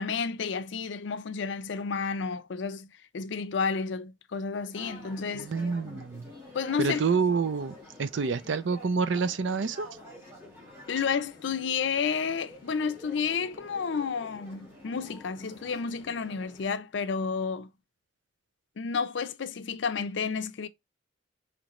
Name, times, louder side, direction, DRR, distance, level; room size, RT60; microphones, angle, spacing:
voice 1, 0.0-5.5 6.5-7.0 10.9-17.7 18.8-20.7, left 5 dB, 70° left, 0.5 m, -31 dB
sound 1, 4.7-16.6, left 1 dB, 15° right, 2.9 m, -49 dB
voice 2, 5.3-6.3 6.8-7.7 8.0-9.9, right 5 dB, 70° right, 0.5 m, -28 dB
5.0 x 3.2 x 3.0 m
head